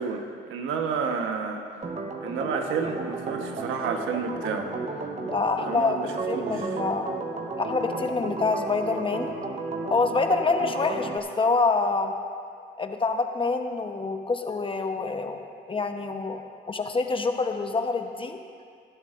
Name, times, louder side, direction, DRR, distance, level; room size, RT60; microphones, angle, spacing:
voice 1, 0.0-1.6 2.2-4.7 5.6-6.8, right 5 dB, 90° right, 4 dB, 1.1 m, -30 dB
Organ, 1.8-11.2, right 3 dB, 35° right, 1.0 m, -33 dB
voice 2, 5.2-7.2 7.6-9.3 9.9-12.1 12.8-16.4 16.7-18.4, left 3 dB, 25° left, 5 dB, 0.9 m, -26 dB
18.5 x 11.5 x 2.5 m, 2.3 s
cardioid pair, 90°, 20 cm